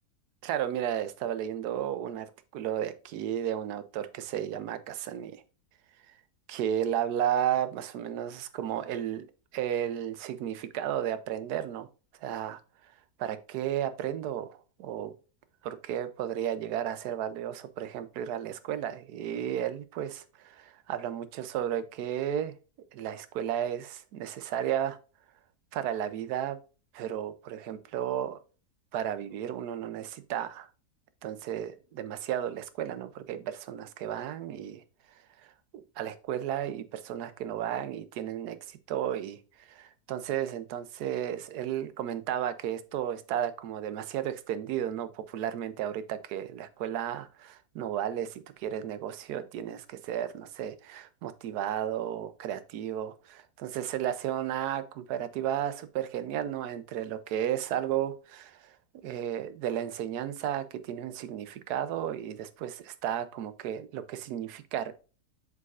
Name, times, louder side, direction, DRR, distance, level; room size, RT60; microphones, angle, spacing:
voice 1, 0.4-2.3 2.5-5.4 6.5-9.3 9.5-11.9 12.2-12.6 13.2-15.1 15.6-22.5 22.9-25.0 25.7-26.6 26.9-28.4 28.9-30.7 31.2-34.8 36.0-58.7 59.0-64.9, right 10 dB, 80° right, 1.2 m, -33 dB
8.0 x 5.0 x 2.4 m
omnidirectional pair, 1.7 m